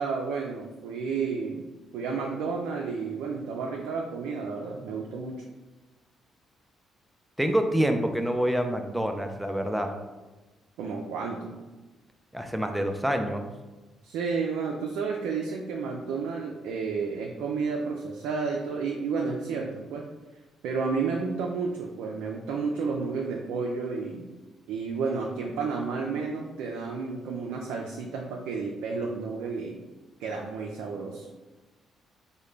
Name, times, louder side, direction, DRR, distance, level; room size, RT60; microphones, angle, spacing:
voice 1, 0.0-1.6 1.9-5.4 10.8-11.6 14.0-20.1 20.6-24.3 24.7-29.8 30.2-31.3, right 4 dB, 85° right, 0 dB, 0.3 m, -31 dB
voice 2, 7.4-9.9 12.3-13.4, equal, 5° right, 5 dB, 0.4 m, -26 dB
3.7 x 2.1 x 3.2 m, 1.2 s
supercardioid pair, 65°, 0 cm